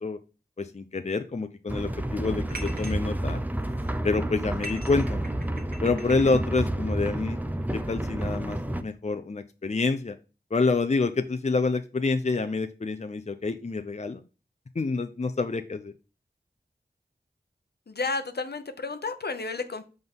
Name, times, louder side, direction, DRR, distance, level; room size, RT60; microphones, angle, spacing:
voice 1, 0.6-3.4 4.0-5.2 5.8-7.4 7.7-10.2 10.5-14.2 14.7-15.9, left 3 dB, 40° left, 9 dB, 0.6 m, -27 dB
sound 1, 1.7-8.8, right 1 dB, 10° right, 0.7 m, -30 dB
sound 2, 2.5-3.0 3.5-4.0 4.5-6.4, right 1 dB, 60° right, 1.6 m, -42 dB
voice 2, 17.9-19.8, left 3 dB, 70° left, 9 dB, 0.9 m, -32 dB
5.9 x 3.9 x 5.3 m, 0.32 s
wide cardioid pair, 45°, 17 cm